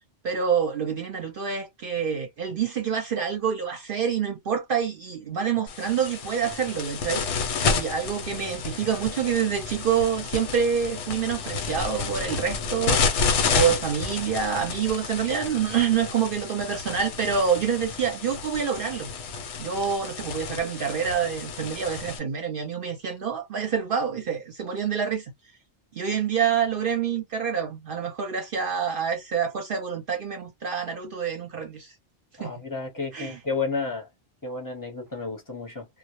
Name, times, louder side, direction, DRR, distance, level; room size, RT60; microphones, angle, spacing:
voice 1, 0.2-7.2 7.6-13.0 13.5-19.1 19.6-25.3 25.9-31.9 32.4-32.5 33.1-33.4, right 7 dB, 60° right, 0.7 m, -27 dB
sound 1, 5.7-22.2, left 5 dB, 85° left, 1.0 m, -30 dB
voice 2, 32.4-34.1 34.4-35.9, left 4 dB, 20° left, 0.6 m, -31 dB
2.1 x 2.0 x 2.9 m
omnidirectional pair, 1.2 m